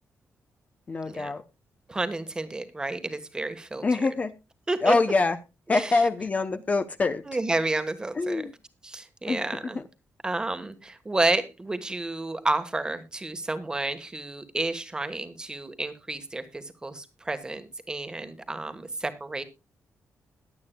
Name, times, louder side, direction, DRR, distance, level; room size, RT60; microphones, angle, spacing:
voice 1, 0.9-1.4 3.8-4.3 4.8-5.4 5.7-7.2 8.1-8.5 9.3-9.8, left 3 dB, 30° left, 10 dB, 0.7 m, -25 dB
voice 2, 1.9-3.8 4.7-4.9 5.7-5.9 7.3-8.4 8.8-9.8 10.2-19.4, right 2 dB, 15° right, 10 dB, 1.3 m, -30 dB
21.5 x 8.5 x 2.2 m, 0.26 s
wide cardioid pair, 160°, 5 cm